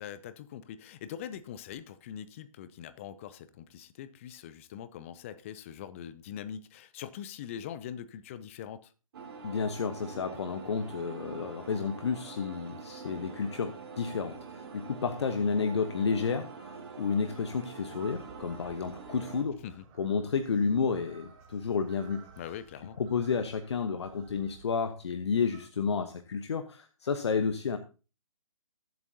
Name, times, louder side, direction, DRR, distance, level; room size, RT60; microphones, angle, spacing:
voice 1, 0.0-8.9 19.6-19.8 22.4-23.0, left 9 dB, 25° left, 0.5 m, -43 dB
sound 1, 9.1-19.4, right 5 dB, 45° right, 2.6 m, -45 dB
voice 2, 9.4-19.6 20.0-22.2 23.0-27.8, left 5 dB, 50° left, 1.0 m, -31 dB
sound 2, 17.9-25.7, right 6 dB, 25° right, 1.7 m, -56 dB
20.5 x 7.8 x 2.8 m
figure-of-eight pair, 135°, 18 cm